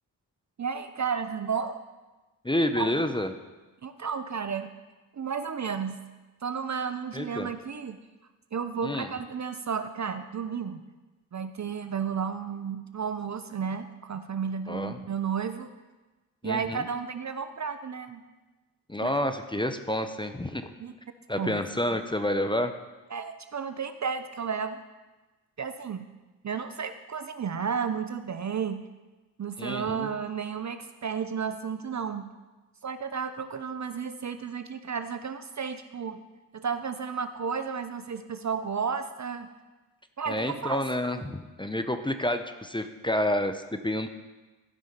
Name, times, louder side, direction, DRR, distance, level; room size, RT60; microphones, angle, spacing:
voice 1, 0.6-1.8 2.8-2.9 3.8-4.7 5.1-6.0 6.4-8.0 8.5-10.8 11.3-15.7 16.4-18.2 19.0-19.1 20.8-20.9 21.4-21.6 23.1-24.8 25.6-26.0 26.4-28.8 29.4-32.3 32.8-36.2 36.5-39.5 40.2-40.8, right 6 dB, 35° right, 9 dB, 0.7 m, -32 dB
voice 2, 2.4-3.3 7.1-7.5 8.8-9.1 14.7-15.0 16.4-16.8 18.9-20.7 21.3-22.7 29.6-30.1 40.3-44.1, left 1 dB, 10° left, 8 dB, 0.9 m, -29 dB
13.5 x 5.5 x 5.3 m, 1.2 s
supercardioid pair, 45°, 46 cm